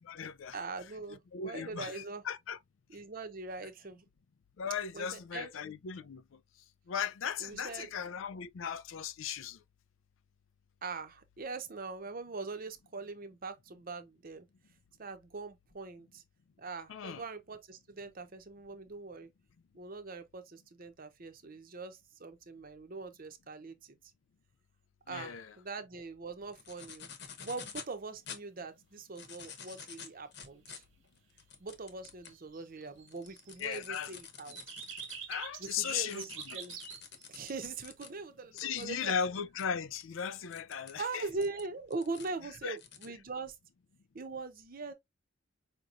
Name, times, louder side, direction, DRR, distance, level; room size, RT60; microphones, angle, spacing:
voice 1, 0.0-0.6 1.3-2.6 4.6-6.4 6.9-9.6 16.9-17.2 25.1-25.5 33.6-34.1 35.3-36.6 38.5-41.3 42.6-42.8, left 7 dB, 80° left, 0.4 m, -37 dB
voice 2, 0.5-2.2 2.9-4.1 4.9-5.5 7.4-7.9 10.8-14.5 15.0-16.2 16.6-19.3 19.7-24.0 25.1-27.1 27.4-30.8 31.6-34.6 35.6-36.7 37.3-39.1 41.0-43.6 44.1-44.9, right 3 dB, 45° right, 0.7 m, -42 dB
sound 1, 26.5-27.9 28.3-28.4 29.0-32.4 32.9-38.1 38.6-38.8 39.6-39.7 39.9-40.0 40.5-40.9 41.4-42.3 42.8-43.1, left 7 dB, 60° left, 1.0 m, -49 dB
sound 2, 29.4-29.9 32.0-33.8 34.5-37.6, right 7 dB, 90° right, 1.2 m, -46 dB
5.0 x 2.9 x 2.5 m
head